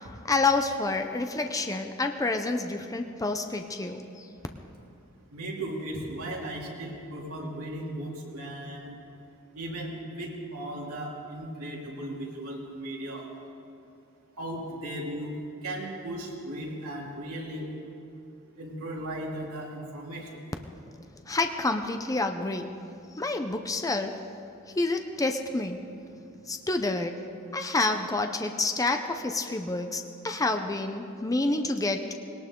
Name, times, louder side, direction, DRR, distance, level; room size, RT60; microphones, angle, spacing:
voice 1, 0.3-4.3 21.3-22.7 23.2-24.2 24.7-25.8 26.5-27.2 27.5-32.1, left 3 dB, 15° left, 6 dB, 0.6 m, -28 dB
voice 2, 5.3-8.9 9.5-13.3 14.4-15.3 15.6-17.7 18.6-20.4 31.5-31.6, right 1 dB, 85° right, -2 dB, 3.0 m, -36 dB
20.0 x 18.5 x 3.8 m, 2.6 s
head